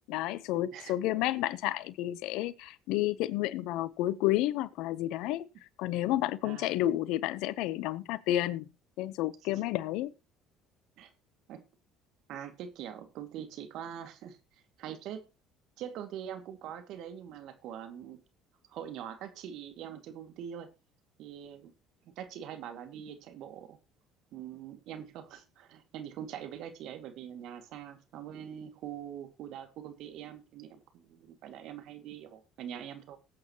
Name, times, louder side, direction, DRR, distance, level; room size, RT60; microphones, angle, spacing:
voice 1, 0.0-5.4 5.8-8.6 9.0-10.1, left 15 dB, 75° left, 0.9 m, -31 dB
voice 2, 12.3-15.2 15.8-18.2 18.7-20.7 21.2-21.7 22.2-23.8 24.3-33.2, right 9 dB, 70° right, 2.2 m, -43 dB
19.0 x 8.8 x 3.0 m
hypercardioid pair, 70°, 0 cm